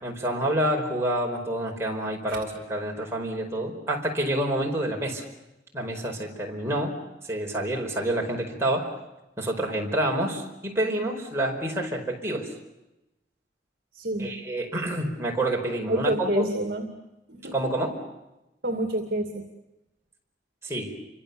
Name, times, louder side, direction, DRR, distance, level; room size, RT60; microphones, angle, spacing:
voice 1, 0.0-5.3 5.7-6.9 7.3-8.9 9.4-12.5 14.2-16.5 17.5-17.9 20.6-20.9, right 1 dB, 15° right, 0 dB, 4.9 m, -28 dB
voice 2, 13.9-14.3 15.8-16.9 17.3-17.5 18.6-19.4, right 1 dB, 55° right, 6 dB, 2.5 m, -28 dB
29.0 x 25.5 x 7.1 m, 0.96 s
head